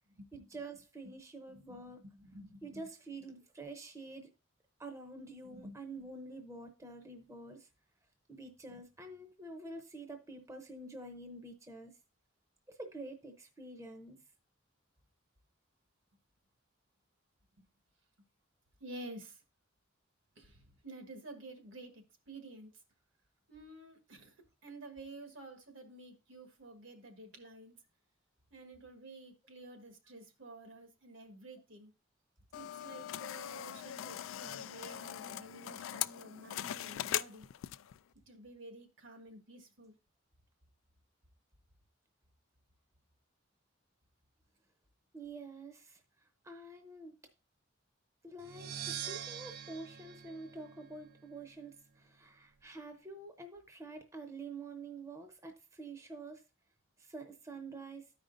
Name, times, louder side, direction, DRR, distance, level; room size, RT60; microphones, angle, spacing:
voice 1, 0.3-2.0 2.6-4.3 4.8-7.7 8.3-11.9 12.7-14.2 45.1-47.2 48.2-56.4 57.0-58.1, right 2 dB, 15° right, 0.7 m, -48 dB
voice 2, 1.5-2.8 5.5-5.8 18.8-19.4 20.4-21.9 22.3-22.7 23.5-24.3 24.6-27.7 28.5-31.9 32.5-37.5 38.3-39.9, right 2 dB, 75° right, 1.5 m, -51 dB
sound 1, 32.5-38.0, left 12 dB, 80° left, 0.3 m, -40 dB
sound 2, 48.4-51.2, right 9 dB, 50° right, 0.3 m, -44 dB
13.5 x 5.0 x 2.6 m
head